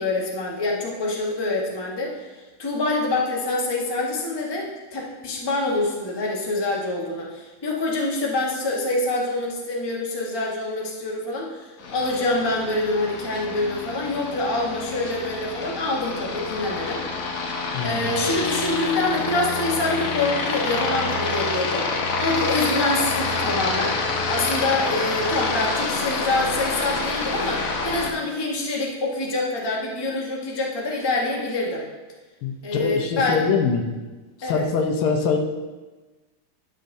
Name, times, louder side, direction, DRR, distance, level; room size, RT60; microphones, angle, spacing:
voice 1, 0.0-2.1 2.6-17.0 17.5-24.0 24.3-31.8 32.6-33.4 34.4-34.6, left 2 dB, 20° left, -3 dB, 0.7 m, -26 dB
Aircraft, 11.8-28.1, left 3 dB, 60° left, 0.9 m, -27 dB
voice 2, 17.7-18.1 32.4-33.8 34.4-35.4, left 5 dB, 85° left, 4 dB, 1.7 m, -23 dB
11.5 x 6.5 x 2.6 m, 1.2 s
omnidirectional pair, 2.3 m